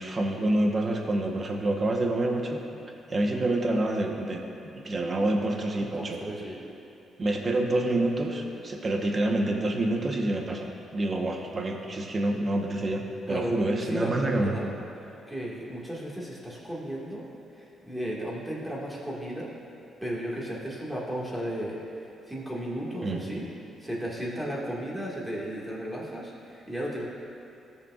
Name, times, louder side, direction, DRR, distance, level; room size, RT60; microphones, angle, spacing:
voice 1, 0.0-2.6 3.1-6.2 7.2-13.0 13.3-14.5 23.0-23.2, right 1 dB, 35° right, 1 dB, 1.0 m, -27 dB
voice 2, 5.8-6.6 13.3-14.7 15.3-17.3 17.6-19.5 20.0-21.8 22.3-23.5 23.8-27.0, equal, 10° right, -5 dB, 1.9 m, -34 dB
14.5 x 6.8 x 2.4 m, 2.7 s
cardioid pair, 90°, 0 cm